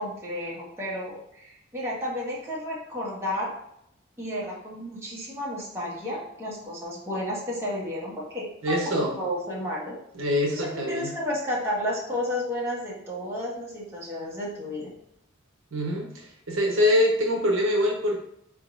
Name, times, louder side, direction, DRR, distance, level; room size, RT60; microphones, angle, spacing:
voice 1, 0.0-3.5 4.2-10.0 10.5-14.9, left 1 dB, 15° right, -6 dB, 1.2 m, -32 dB
voice 2, 8.6-9.1 10.1-11.1 15.7-18.2, left 1 dB, 65° right, 0 dB, 0.8 m, -24 dB
4.4 x 3.7 x 2.5 m, 0.75 s
head